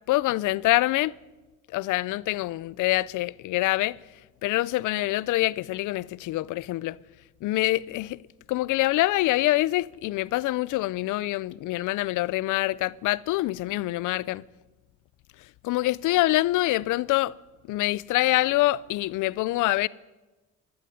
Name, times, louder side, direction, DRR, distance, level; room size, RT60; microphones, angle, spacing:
voice 1, 0.1-1.1 1.7-4.0 4.4-7.0 7.4-8.2 8.5-14.4 15.6-17.3 17.7-19.9, left 17 dB, 85° left, 0.5 m, -25 dB
13.0 x 12.0 x 9.3 m
cardioid pair, 90°, 30 cm